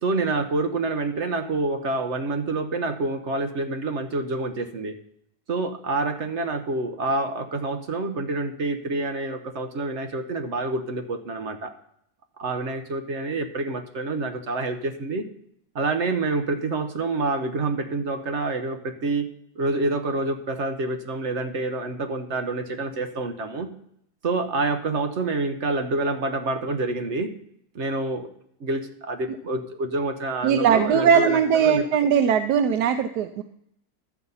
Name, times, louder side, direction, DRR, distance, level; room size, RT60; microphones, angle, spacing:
voice 1, 0.0-5.0 5.5-11.7 12.4-15.2 15.7-19.3 19.6-23.7 24.2-27.3 27.7-28.3 28.6-31.8, right 2 dB, 55° right, 7 dB, 1.0 m, -27 dB
voice 2, 30.4-33.4, right 7 dB, 85° right, 10 dB, 1.2 m, -20 dB
12.0 x 8.0 x 5.5 m, 0.73 s
omnidirectional pair, 1.7 m